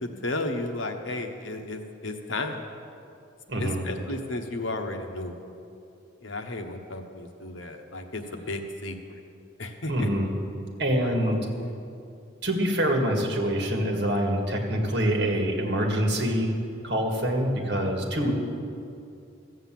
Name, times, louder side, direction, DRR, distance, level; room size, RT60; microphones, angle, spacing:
voice 1, 0.0-2.6 3.6-5.3 6.2-9.2 9.6-10.1 11.0-11.7, left 2 dB, 75° left, 4 dB, 1.2 m, -34 dB
voice 2, 3.5-3.8 9.9-10.3 10.8-11.4 12.4-16.5 16.8-18.3, equal, 60° right, 1 dB, 1.9 m, -25 dB
14.5 x 8.0 x 7.6 m, 2.6 s
head